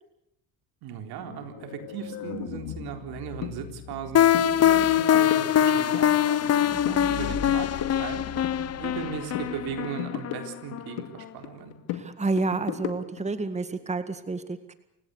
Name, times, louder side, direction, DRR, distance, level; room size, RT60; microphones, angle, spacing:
voice 1, 0.8-6.5 7.1-11.7, right 8 dB, 80° right, 6 dB, 4.0 m, -38 dB
sound 1, 1.2-9.9, left 10 dB, 70° left, 2.4 m, -41 dB
sound 2, 3.4-3.5 3.9-4.1 4.3-4.5 4.8-6.1 6.4-7.0 7.3-9.1 9.3-11.1 11.4-13.3, left 12 dB, 85° left, 2.5 m, -36 dB
sound 3, 4.1-10.9, left 10 dB, 40° left, 0.9 m, -23 dB
voice 2, 11.9-14.7, right 3 dB, 20° right, 10 dB, 1.9 m, -30 dB
29.0 x 17.0 x 8.3 m, 0.79 s
cardioid pair, 105°, 37 cm